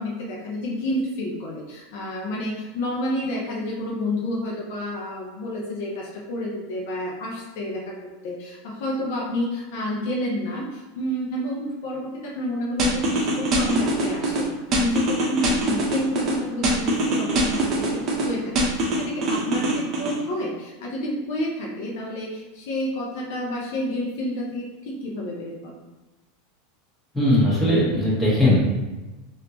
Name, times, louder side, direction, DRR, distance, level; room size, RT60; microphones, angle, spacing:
voice 1, 0.0-7.9 8.2-25.7, left 1 dB, 65° left, -2 dB, 0.7 m, -29 dB
sound 1, 12.8-14.4 14.7-16.3 16.6-18.3 18.6-20.1, right 1 dB, 35° right, 0.9 m, -22 dB
voice 2, 27.1-28.6, left 1 dB, 10° left, -8 dB, 1.4 m, -19 dB
3.5 x 2.7 x 2.9 m, 1.1 s
supercardioid pair, 135°, 0 cm